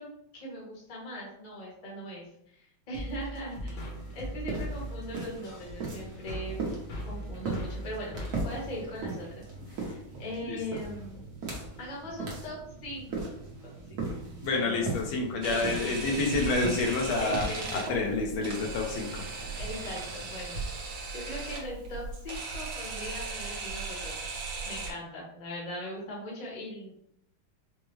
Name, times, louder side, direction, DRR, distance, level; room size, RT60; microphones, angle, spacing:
voice 1, 0.0-3.8 4.1-6.7 7.0-8.2 8.4-11.3 11.8-13.2 13.9-14.0 14.5-14.8 15.3-16.0 17.2-18.2 19.5-20.7 21.1-24.2 24.6-27.1, equal, 30° left, -3 dB, 0.8 m, -40 dB
sound 1, 2.9-9.6, equal, 60° left, 1.4 m, -40 dB
sound 2, 3.6-21.1, right 3 dB, 55° right, 1.3 m, -39 dB
voice 2, 14.4-19.2, left 3 dB, 90° left, 1 dB, 1.6 m, -29 dB
Camera, 15.4-24.9, right 3 dB, 75° right, 1.5 m, -37 dB
4.7 x 2.2 x 3.1 m, 0.75 s
omnidirectional pair, 2.2 m